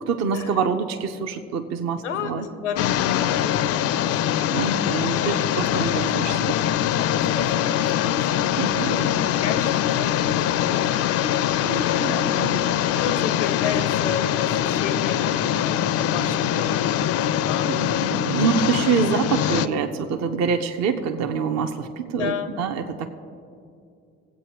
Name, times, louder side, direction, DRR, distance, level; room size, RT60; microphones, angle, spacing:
voice 1, 0.1-2.5 4.5-6.6 8.6-9.2 11.6-12.6 17.7-23.1, right 6 dB, 50° right, 6 dB, 0.7 m, -26 dB
voice 2, 2.0-4.3 5.1-6.1 7.0-8.6 8.9-9.1 9.4-10.6 11.6-17.2 17.4-17.7 22.2-22.5, left 7 dB, 85° left, 9 dB, 0.7 m, -33 dB
sound 1, 2.8-19.7, left 11 dB, 45° left, 0.4 m, -23 dB
18.0 x 8.3 x 2.9 m, 2.5 s
figure-of-eight pair, 45°, 35 cm